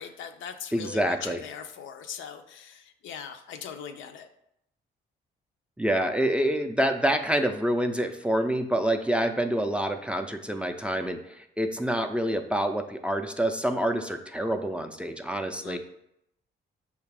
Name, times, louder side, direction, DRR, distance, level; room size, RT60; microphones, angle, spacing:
voice 1, 0.0-4.3 15.6-15.8, left 7 dB, 75° left, 8 dB, 0.5 m, -40 dB
voice 2, 0.7-1.4 5.8-15.8, right 1 dB, 5° right, 6 dB, 0.3 m, -27 dB
5.3 x 2.4 x 3.4 m, 0.77 s
cardioid pair, 90°, 20 cm